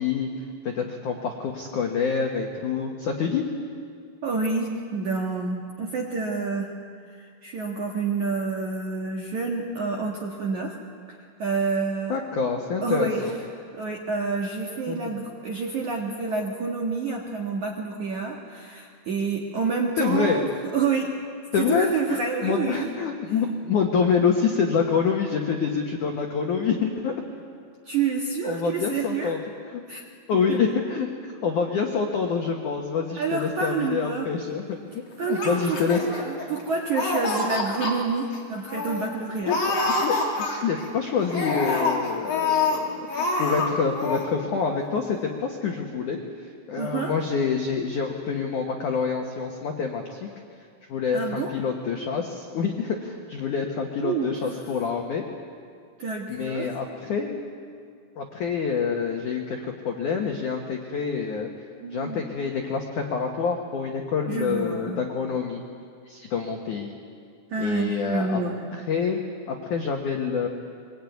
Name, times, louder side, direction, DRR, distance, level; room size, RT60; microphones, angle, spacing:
voice 1, 0.0-3.5 12.1-13.3 14.9-15.2 20.0-20.5 21.5-27.1 28.4-29.4 29.7-29.8 30.3-31.1 31.4-36.0 39.4-46.2 46.7-50.3 50.9-55.2 56.3-57.4 58.2-61.5 61.9-65.6 66.1-66.9 67.6-68.4 68.9-69.2 69.5-70.5, left 6 dB, 75° left, 2 dB, 1.8 m, -27 dB
voice 2, 4.2-6.7 7.1-10.8 11.1-12.2 12.8-13.3 13.6-21.1 21.6-22.9 27.9-29.4 29.9-30.0 30.3-30.6 33.2-34.3 35.2-39.6 46.8-47.1 51.1-51.6 54.0-54.3 56.0-56.7 61.8-62.2 64.3-65.0 67.5-68.6, right 4 dB, 65° right, -1 dB, 1.9 m, -28 dB
Laughter, 35.3-36.6 36.9-37.9 38.3-38.4 38.7-39.1 39.5-40.8 41.3-42.8 43.1-43.7 43.9-44.2, left 3 dB, 35° left, 3.4 m, -26 dB
24.0 x 21.5 x 9.4 m, 2.2 s
omnidirectional pair, 6.0 m